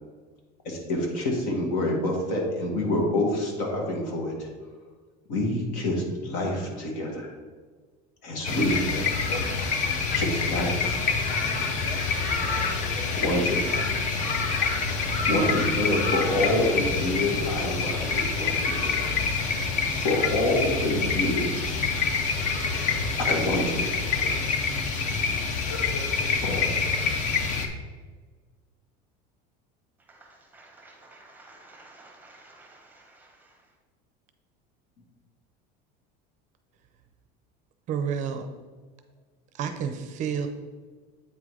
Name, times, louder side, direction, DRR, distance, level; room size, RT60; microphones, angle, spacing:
voice 1, 0.6-4.7 5.3-7.3 8.2-9.0 10.1-11.1 13.2-13.8 15.2-19.2 20.0-21.8 23.3-24.1 26.4-26.8, left 1 dB, 65° left, 0 dB, 1.8 m, -27 dB
sound 1, 8.4-27.7, left 4 dB, 40° left, 0.8 m, -26 dB
voice 2, 30.1-33.7, right 2 dB, 10° right, 1 dB, 1.0 m, -52 dB
voice 3, 37.9-38.5 39.5-40.5, right 7 dB, 40° right, 7 dB, 0.5 m, -29 dB
8.4 x 3.7 x 4.7 m, 1.5 s
cardioid pair, 165°, 20 cm